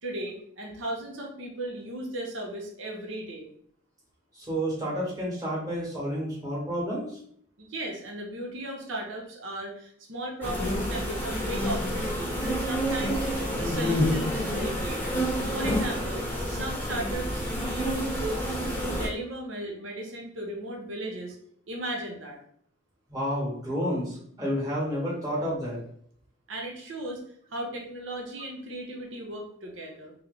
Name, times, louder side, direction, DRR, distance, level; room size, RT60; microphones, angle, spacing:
voice 1, 0.0-3.5 7.6-13.3 13.6-15.2 15.5-21.4 21.7-22.4 26.5-27.2 27.5-30.1, right 1 dB, 90° right, 0 dB, 0.9 m, -36 dB
voice 2, 4.3-7.1 23.1-25.8, equal, 20° right, -6 dB, 1.7 m, -30 dB
sound 1, 10.4-19.1, equal, 10° left, 0.7 m, -28 dB
3.3 x 3.1 x 3.8 m, 0.64 s
head